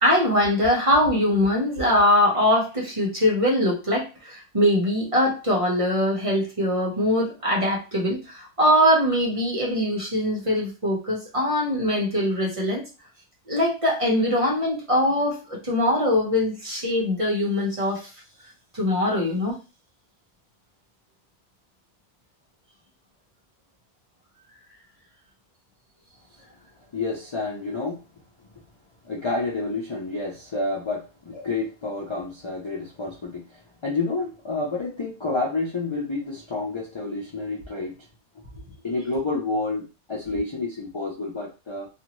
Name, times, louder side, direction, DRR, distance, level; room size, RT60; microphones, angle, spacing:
voice 1, 0.0-12.9 13.5-18.1 18.7-19.6, left 1 dB, 30° right, 1.0 m, -22 dB
voice 2, 26.9-28.0 29.0-37.9 38.8-41.9, left 3 dB, 45° left, 0.3 m, -29 dB
2.6 x 2.5 x 2.9 m
omnidirectional pair, 1.2 m